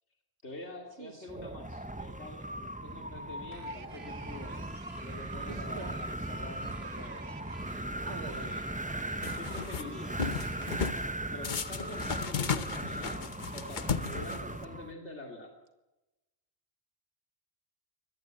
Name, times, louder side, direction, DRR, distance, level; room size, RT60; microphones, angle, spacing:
voice 1, 0.4-7.3 8.3-8.7 9.3-10.3 11.3-15.5, left 2 dB, 85° left, 2 dB, 3.0 m, -46 dB
voice 2, 1.0-1.6 5.5-6.0 8.1-8.6, right 4 dB, 85° right, 9 dB, 2.0 m, -45 dB
Wind, 1.3-14.9, right 1 dB, 10° right, 0.7 m, -38 dB
sound 1, 3.5-10.8, right 6 dB, 70° right, 1.4 m, -51 dB
sound 2, 9.2-9.8 10.2-11.0 11.4-14.6, left 6 dB, 45° left, 1.0 m, -35 dB
23.5 x 18.5 x 7.8 m, 1.0 s
omnidirectional pair, 1.1 m